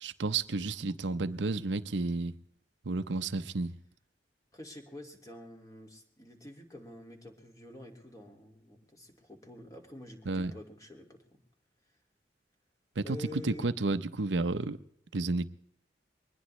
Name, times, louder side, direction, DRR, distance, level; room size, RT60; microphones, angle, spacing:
voice 1, 0.0-2.3 2.8-3.7 10.3-10.5 13.0-14.8 15.1-15.5, right 3 dB, 85° right, 0.8 m, -31 dB
voice 2, 4.5-11.4 13.0-13.8, left 1 dB, 20° left, 2.3 m, -48 dB
22.5 x 20.0 x 3.2 m
head